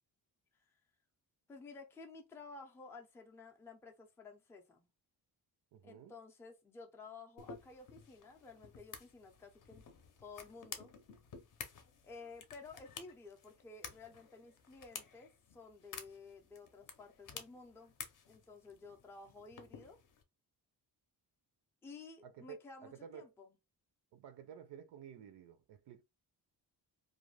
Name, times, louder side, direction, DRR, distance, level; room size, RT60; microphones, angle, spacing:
voice 1, 1.5-4.9 5.8-9.8 10.2-10.9 12.0-17.9 18.3-20.0 21.8-23.6, left 4 dB, 5° left, 0.3 m, -53 dB
voice 2, 5.7-6.1 22.2-23.3 24.1-26.0, right 8 dB, 80° right, 0.6 m, -52 dB
sound 1, 7.4-20.2, left 6 dB, 50° left, 0.6 m, -53 dB
2.4 x 2.2 x 3.1 m
wide cardioid pair, 175°, 40 cm